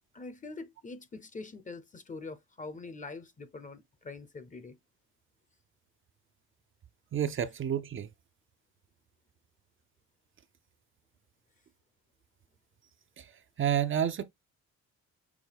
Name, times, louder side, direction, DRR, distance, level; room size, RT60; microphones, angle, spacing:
voice 1, 0.1-4.8, left 3 dB, 25° left, 0.7 m, -44 dB
voice 2, 7.1-8.1 13.2-13.3 13.6-14.2, right 9 dB, 45° right, 0.5 m, -29 dB
6.0 x 2.1 x 3.4 m
cardioid pair, 90°, 30 cm